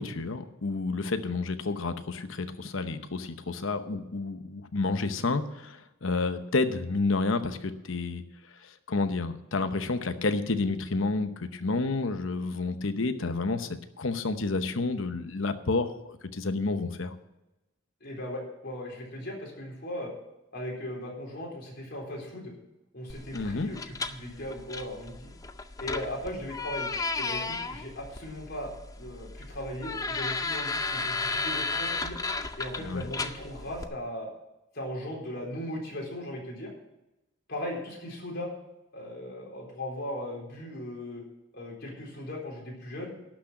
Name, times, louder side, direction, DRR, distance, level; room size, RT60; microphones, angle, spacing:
voice 1, 0.0-8.2 8.9-13.7 14.0-15.9 16.3-17.1 23.3-23.7 32.8-33.0, left 3 dB, 70° left, 9 dB, 0.9 m, -30 dB
voice 2, 18.0-20.1 20.5-22.5 22.9-25.3 25.8-26.9 27.1-32.2 32.6-34.3 34.7-36.7 37.5-38.5 38.9-41.2 41.5-43.1, left 1 dB, 50° left, -2 dB, 4.0 m, -38 dB
sound 1, 23.1-33.8, left 3 dB, 15° left, 0.5 m, -34 dB
12.0 x 6.3 x 8.9 m, 0.97 s
head